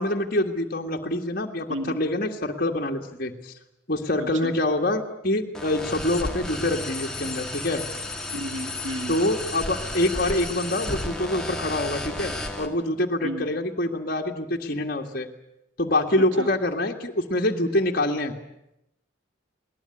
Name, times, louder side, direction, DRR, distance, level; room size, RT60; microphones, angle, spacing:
voice 1, 0.0-3.5 3.9-7.8 9.1-15.3 15.8-18.3, left 1 dB, 45° left, 2 dB, 1.9 m, -25 dB
voice 2, 4.2-4.5 8.3-9.2 13.2-13.5 16.4-16.5, equal, 75° right, 7 dB, 2.5 m, -32 dB
sound 1, 5.5-12.7, left 1 dB, 5° left, 2.1 m, -33 dB
20.5 x 19.5 x 9.8 m, 0.83 s
head